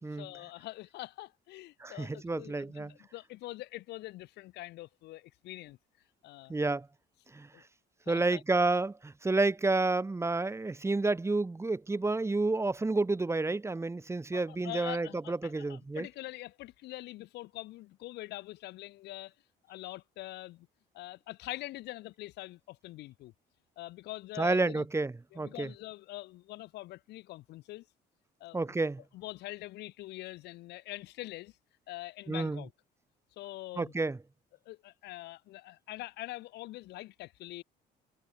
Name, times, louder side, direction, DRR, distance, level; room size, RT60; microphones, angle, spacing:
voice 1, 0.1-5.8 6.2-6.6 7.5-7.6 8.0-8.4 14.3-19.3 19.7-20.7 20.9-23.3 23.8-24.9 25.3-27.8 28.4-28.8 29.1-31.6 31.9-32.7 33.4-33.9 34.6-37.6, left 17 dB, 80° left, 6.7 m, -44 dB
voice 2, 1.8-2.9 6.5-6.9 7.3-7.5 8.1-16.1 24.4-25.7 28.5-29.0 32.3-32.6 33.8-34.2, right 3 dB, 15° right, 3.5 m, -30 dB
cardioid pair, 110°, 17 cm